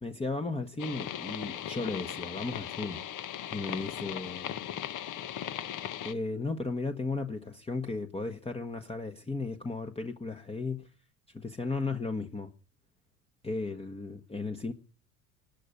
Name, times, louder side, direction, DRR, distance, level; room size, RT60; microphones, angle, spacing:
voice 1, 0.0-3.0 3.5-4.6 6.0-10.9 11.3-12.5 13.4-14.7, left 3 dB, 15° left, 1.4 m, -35 dB
sound 1, 0.8-6.1, left 11 dB, 45° left, 1.4 m, -38 dB
18.5 x 11.0 x 6.8 m
hypercardioid pair, 80°, 42 cm